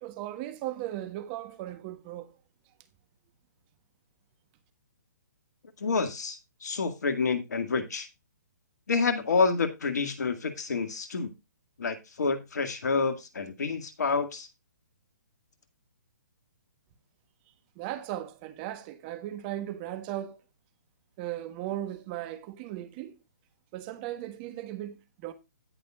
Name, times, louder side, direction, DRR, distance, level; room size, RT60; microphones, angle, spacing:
voice 1, 0.0-2.3 17.8-20.4 21.2-23.1 23.7-25.0 25.2-25.3, right 13 dB, 30° right, 1.4 m, -37 dB
voice 2, 5.8-8.1 8.9-11.3 11.8-14.5, left 4 dB, 70° left, 2.0 m, -28 dB
17.0 x 5.9 x 2.4 m
figure-of-eight pair, 135°, 10 cm